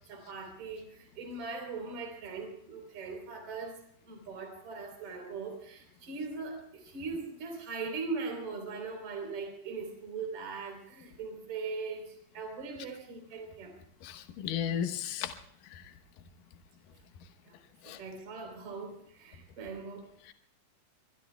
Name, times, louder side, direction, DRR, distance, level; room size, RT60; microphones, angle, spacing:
voice 1, 0.0-13.8 17.5-17.6 17.8-20.1, right 4 dB, 40° right, 4 dB, 4.6 m, -40 dB
voice 2, 14.0-15.4 15.7-15.9 17.8-18.0 20.3-20.4, left 9 dB, 90° left, 7 dB, 1.9 m, -35 dB
24.5 x 21.5 x 2.3 m, 0.69 s
omnidirectional pair, 5.4 m